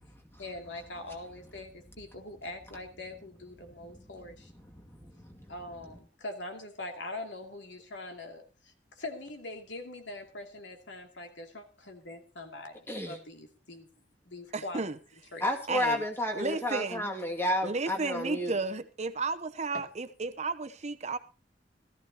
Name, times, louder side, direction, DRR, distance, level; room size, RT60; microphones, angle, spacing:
voice 1, 0.4-4.5 5.5-13.9 14.2-14.8 15.3-15.4 19.7-19.8, left 2 dB, 90° left, 2.6 m, -43 dB
voice 2, 4.7-5.5 12.9-13.2 15.4-18.5, left 1 dB, 15° left, 2.3 m, -32 dB
voice 3, 14.5-15.0 15.7-16.0 16.3-17.1 17.6-21.2, right 3 dB, 40° right, 0.8 m, -33 dB
17.5 x 14.0 x 2.9 m
head